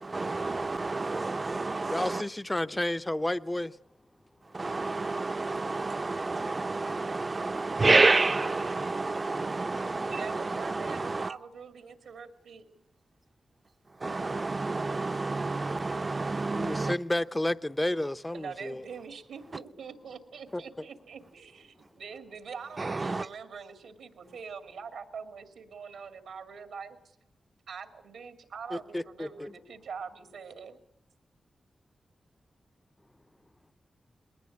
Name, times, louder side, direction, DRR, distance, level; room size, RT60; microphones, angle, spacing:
voice 1, 0.0-2.2 4.5-11.3 14.0-17.0 22.8-23.3, right 3 dB, 40° right, 0.8 m, -29 dB
voice 2, 1.9-3.7 16.5-18.8 20.5-20.6 28.7-29.5, left 1 dB, 20° left, 0.8 m, -31 dB
voice 3, 10.1-12.7 18.3-27.0 27.7-30.8, right 6 dB, 90° right, 2.3 m, -43 dB
20.5 x 19.0 x 8.5 m
cardioid pair, 45°, 0 cm